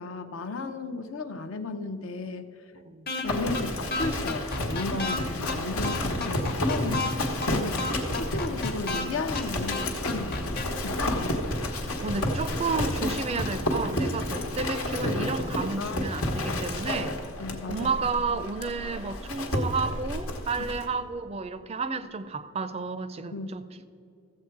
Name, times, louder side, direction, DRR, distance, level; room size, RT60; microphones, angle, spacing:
voice 1, 0.0-2.5 3.2-7.1 7.4-11.4 15.8-16.0 17.4-17.9 23.3-23.5, left 3 dB, 70° left, 0.7 m, -34 dB
voice 2, 2.7-3.1 6.8-7.3 11.1-11.3 12.0-17.2 17.7-23.9, right 4 dB, 30° right, 0.4 m, -32 dB
sound 1, 3.1-3.2 3.5-3.6 3.9-5.2 5.5-5.6 5.8-7.1 7.4-7.5 7.8-9.0 9.3-9.4 9.7-10.6, left 3 dB, 45° left, 1.1 m, -31 dB
Livestock farm animals working animals, 3.3-20.9, left 1 dB, 90° left, 1.3 m, -30 dB
14.5 x 7.7 x 4.6 m
head